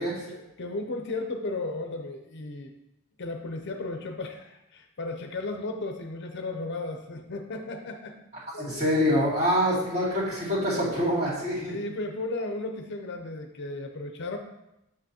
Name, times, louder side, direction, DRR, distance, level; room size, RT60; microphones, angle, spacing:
voice 1, 0.3-2.7 3.2-8.2 8.5-8.9 11.7-14.4, left 2 dB, 50° left, 4 dB, 0.6 m, -35 dB
voice 2, 8.6-11.7, equal, 30° right, -8 dB, 2.6 m, -25 dB
7.6 x 6.3 x 2.8 m, 0.89 s
head